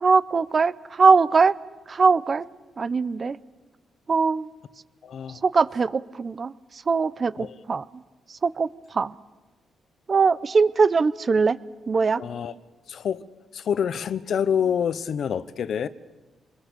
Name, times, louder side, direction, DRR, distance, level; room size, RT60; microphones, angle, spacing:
voice 1, 0.0-1.5 1.9-2.5 2.8-3.4 4.1-4.5 5.4-7.8 8.3-9.1 10.1-11.6 11.9-12.2, right 4 dB, 40° right, 17 dB, 0.7 m, -21 dB
voice 2, 5.0-5.4 7.4-7.6 12.2-12.5 12.9-13.3 13.5-15.9, left 8 dB, 65° left, 15 dB, 0.9 m, -27 dB
26.0 x 21.5 x 6.9 m, 1.2 s
cardioid pair, 90°, 0 cm